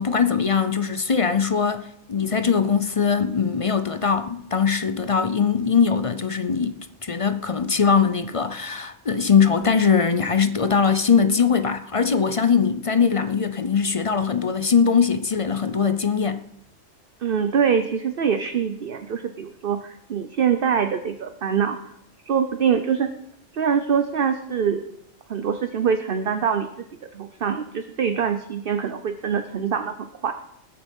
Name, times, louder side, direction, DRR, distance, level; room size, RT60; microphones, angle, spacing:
voice 1, 0.0-16.4, left 6 dB, 40° left, 0.5 m, -21 dB
voice 2, 17.2-21.8 22.3-23.1 23.5-24.8 25.3-26.9 27.1-30.3, right 7 dB, 50° right, 0.9 m, -24 dB
20.5 x 7.2 x 5.4 m
omnidirectional pair, 1.3 m